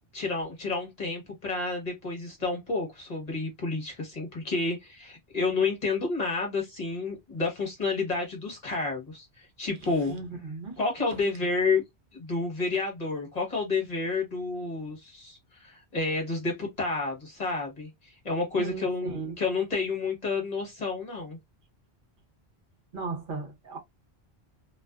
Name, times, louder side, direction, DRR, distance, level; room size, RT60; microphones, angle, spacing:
voice 1, 0.1-10.1 10.8-11.8 12.1-21.4, left 3 dB, 40° left, 1.1 m, -30 dB
voice 2, 10.1-10.8 11.2-11.3 18.6-19.4 22.9-23.8, right 4 dB, 55° right, 0.9 m, -36 dB
2.4 x 2.4 x 2.2 m
omnidirectional pair, 1.1 m